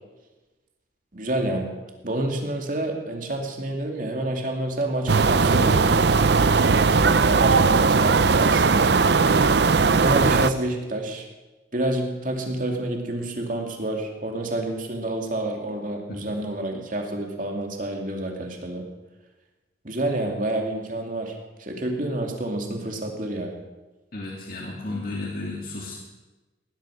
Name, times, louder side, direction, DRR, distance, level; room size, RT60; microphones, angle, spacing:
voice 1, 1.1-1.7 2.0-6.0 7.0-8.9 10.0-11.3 11.7-18.8 19.8-23.6, right 1 dB, 45° right, 2 dB, 2.6 m, -28 dB
sound 1, 5.1-10.5, right 4 dB, 65° right, 0.6 m, -18 dB
voice 2, 24.1-25.9, left 2 dB, 50° left, -3 dB, 2.4 m, -33 dB
18.0 x 12.0 x 6.4 m, 1.2 s
head